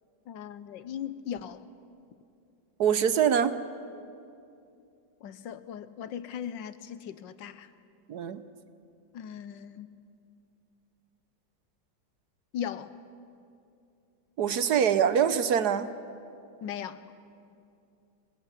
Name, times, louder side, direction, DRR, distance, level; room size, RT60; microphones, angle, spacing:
voice 1, 0.3-1.7 5.2-7.7 9.1-10.0 12.5-12.9 16.6-17.0, left 9 dB, 75° left, 13 dB, 1.5 m, -38 dB
voice 2, 2.8-3.6 8.1-8.4 14.4-15.9, right 8 dB, 65° right, 12 dB, 1.3 m, -24 dB
25.5 x 20.5 x 8.3 m, 2.6 s
omnidirectional pair, 2.0 m